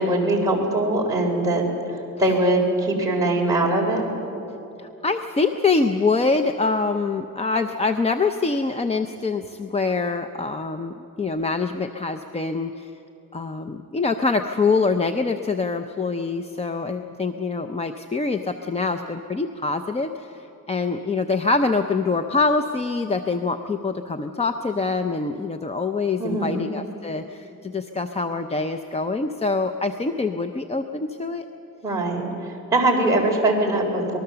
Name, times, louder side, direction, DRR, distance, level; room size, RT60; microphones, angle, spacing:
voice 1, 0.0-1.7 2.2-4.1 26.2-26.7 31.8-32.3 32.7-34.2, right 2 dB, 10° right, -3 dB, 3.7 m, -21 dB
voice 2, 4.8-12.9 13.3-31.5, left 4 dB, 20° left, 7 dB, 0.5 m, -25 dB
25.5 x 20.0 x 6.8 m, 2.9 s
wide cardioid pair, 180°, 34 cm